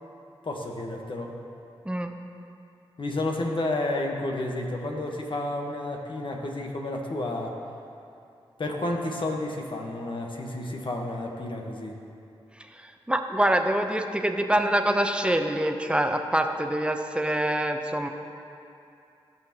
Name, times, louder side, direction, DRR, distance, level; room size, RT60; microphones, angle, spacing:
voice 1, 0.4-1.3 3.0-7.6 8.6-12.0, left 2 dB, 50° left, 1 dB, 1.3 m, -31 dB
voice 2, 12.8-18.1, right 1 dB, 10° right, 5 dB, 0.8 m, -25 dB
15.5 x 5.9 x 3.0 m, 2.6 s
cardioid pair, 45°, 11 cm